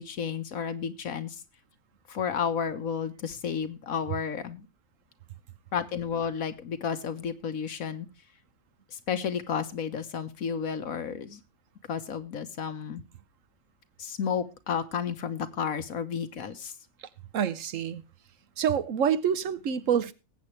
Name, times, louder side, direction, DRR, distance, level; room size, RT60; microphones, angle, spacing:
voice 1, 0.0-1.4 2.1-4.7 5.7-8.1 8.9-11.4 11.9-13.0 14.0-16.7, left 7 dB, 90° left, 1.6 m, -32 dB
voice 2, 17.3-18.0 18.6-20.1, right 8 dB, 70° right, 1.2 m, -27 dB
20.0 x 8.4 x 3.2 m
omnidirectional pair, 1.4 m